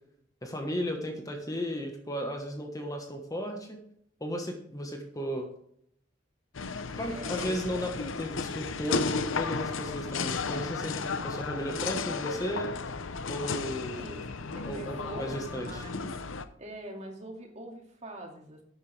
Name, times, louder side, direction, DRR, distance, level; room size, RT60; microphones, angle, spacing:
voice 1, 0.4-3.8 4.2-5.5 6.9-12.7 13.3-14.1 14.7-15.8, equal, 20° left, 3 dB, 1.4 m, -35 dB
sound 1, 6.5-16.4, left 4 dB, 80° left, 0.8 m, -34 dB
voice 2, 7.1-7.7 13.9-14.3 14.5-16.2 16.6-18.6, right 1 dB, 35° right, 1 dB, 2.4 m, -43 dB
12.0 x 9.3 x 3.4 m, 0.70 s
head